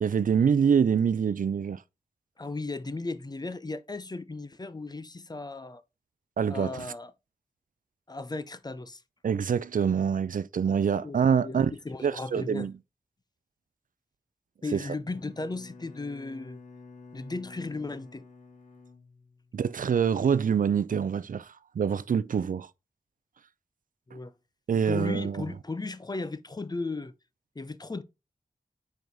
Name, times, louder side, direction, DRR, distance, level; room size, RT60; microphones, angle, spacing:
voice 1, 0.0-1.8 6.4-6.9 9.2-11.7 12.0-12.7 14.7-14.8 19.5-22.7 24.1-24.2 24.7-25.4, right 7 dB, 70° right, 0.4 m, -25 dB
voice 2, 2.4-5.8 6.5-7.1 8.1-9.0 10.7-11.2 11.4-12.7 14.6-16.6 17.1-18.2 24.1-24.3 24.9-27.1 27.6-28.0, left 3 dB, 30° left, 0.6 m, -36 dB
Bowed string instrument, 15.1-19.8, left 4 dB, 60° left, 1.6 m, -50 dB
5.3 x 4.7 x 4.0 m
wide cardioid pair, 70°, 14 cm